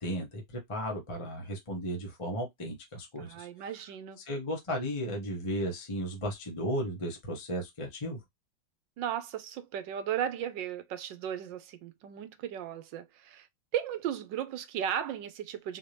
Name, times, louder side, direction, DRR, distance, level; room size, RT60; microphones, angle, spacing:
voice 1, 0.0-3.5 4.2-8.2, equal, 20° left, 0.9 m, -35 dB
voice 2, 3.2-4.2 9.0-13.5 13.7-15.8, right 10 dB, 70° right, 1.2 m, -35 dB
4.4 x 2.8 x 3.2 m
omnidirectional pair, 2.3 m